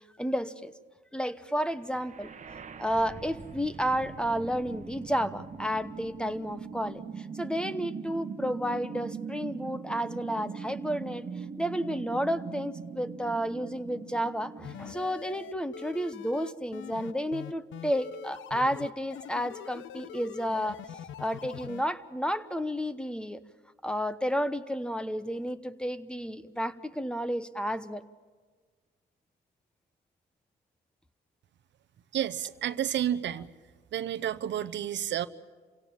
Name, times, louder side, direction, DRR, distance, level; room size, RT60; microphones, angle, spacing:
voice 1, 0.2-0.7 1.1-2.3 2.8-11.2 11.6-20.8 21.2-23.4 23.8-28.0, equal, 5° left, 13 dB, 1.0 m, -31 dB
sound 1, 1.8-15.8, right 5 dB, 35° right, 1.3 m, -41 dB
sound 2, 14.6-21.8, left 10 dB, 75° left, 0.7 m, -43 dB
voice 2, 32.1-33.5 33.9-35.3, right 10 dB, 65° right, 12 dB, 0.8 m, -30 dB
27.5 x 17.0 x 8.8 m, 1.5 s
cardioid pair, 90°, 20 cm